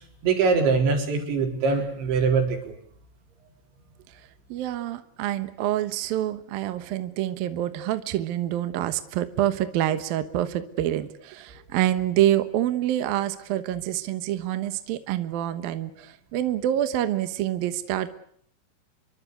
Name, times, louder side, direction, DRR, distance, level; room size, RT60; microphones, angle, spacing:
voice 1, 0.2-2.8, right 4 dB, 85° right, 3 dB, 6.6 m, -23 dB
voice 2, 4.5-18.1, right 12 dB, 65° right, 11 dB, 2.6 m, -26 dB
27.0 x 23.0 x 8.0 m, 0.67 s
omnidirectional pair, 5.1 m